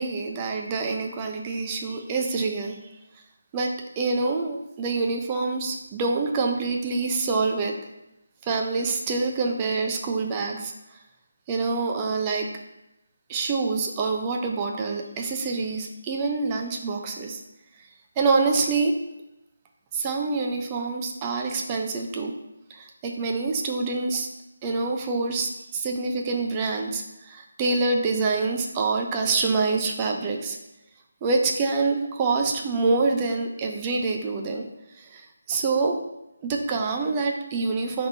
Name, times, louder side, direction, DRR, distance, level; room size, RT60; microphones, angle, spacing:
voice 1, 0.0-2.8 3.5-7.8 8.4-10.7 11.5-12.5 13.3-17.4 18.2-19.0 19.9-22.3 22.7-24.3 24.6-30.6 31.2-34.7 35.0-36.0 36.4-38.1, right 3 dB, 20° right, 2 dB, 0.6 m, -26 dB
10.0 x 3.6 x 2.7 m, 0.89 s
figure-of-eight pair, 160°, 0 cm